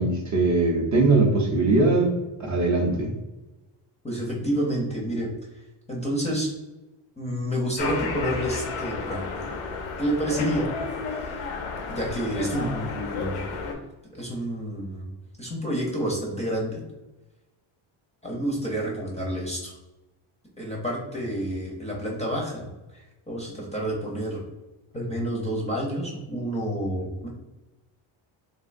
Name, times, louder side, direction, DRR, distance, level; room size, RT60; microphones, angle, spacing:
voice 1, 0.0-2.1 2.4-3.1, right 3 dB, 40° right, -1 dB, 0.5 m, -21 dB
voice 2, 4.0-5.3 5.9-6.5 7.2-9.3 10.0-10.7 11.0-11.4 11.9-13.5 14.1-15.1 15.4-16.8 18.2-19.8 20.6-22.7 22.9-24.4 24.9-27.3, right 1 dB, 15° left, -3 dB, 0.5 m, -29 dB
sound 1, 7.8-13.7, left 4 dB, 90° left, 0.7 m, -32 dB
3.3 x 2.5 x 2.5 m, 1.1 s
cardioid pair, 145°, 50 cm